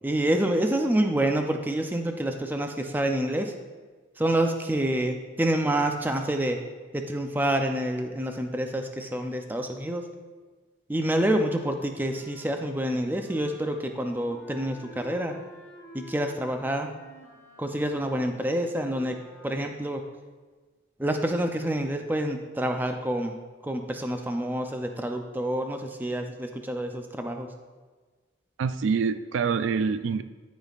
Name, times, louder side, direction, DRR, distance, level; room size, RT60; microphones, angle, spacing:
voice 1, 0.0-3.5 4.2-6.6 6.9-10.1 10.9-15.4 15.9-16.9 17.6-20.0 21.0-23.4 23.6-27.5, right 1 dB, 10° right, 5 dB, 0.4 m, -27 dB
Wind instrument woodwind instrument, 11.2-19.5, equal, 15° left, 2.1 m, -50 dB
voice 2, 28.6-30.2, right 5 dB, 75° right, 12 dB, 0.3 m, -26 dB
13.0 x 5.2 x 2.4 m, 1.4 s
head